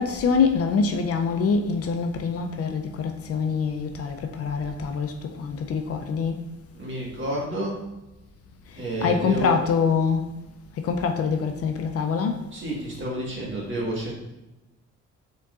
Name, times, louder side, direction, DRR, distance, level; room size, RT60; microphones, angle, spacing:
voice 1, 0.0-6.4 9.0-10.2 10.8-12.4, left 5 dB, 50° left, 0.4 m, -25 dB
voice 2, 6.7-7.8 8.8-9.6 12.5-14.1, right 1 dB, 40° right, 1.5 m, -30 dB
4.3 x 3.9 x 2.4 m
cardioid pair, 90°, 30 cm